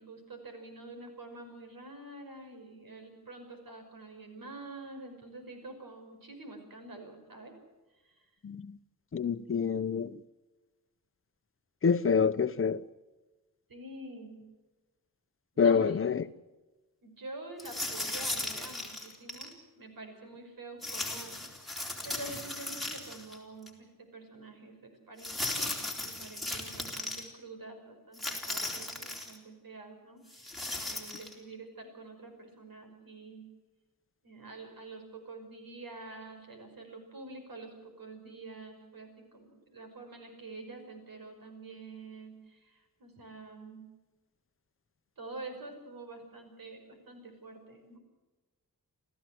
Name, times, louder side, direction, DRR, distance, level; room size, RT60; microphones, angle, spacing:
voice 1, 0.0-7.5 8.0-8.3 13.7-14.4 15.5-16.3 17.0-21.3 22.0-33.5 34.2-43.9 45.2-48.0, right 2 dB, 75° right, 5.6 m, -47 dB
voice 2, 9.1-10.2 11.8-12.8 15.6-16.2, left 6 dB, 40° left, 0.8 m, -26 dB
sound 1, 17.6-19.5 20.8-23.4 23.7-23.8 25.2-27.2 28.1-29.4 30.3-31.3, left 2 dB, ahead, 3.9 m, -37 dB
29.0 x 15.0 x 7.8 m
wide cardioid pair, 175°, 35 cm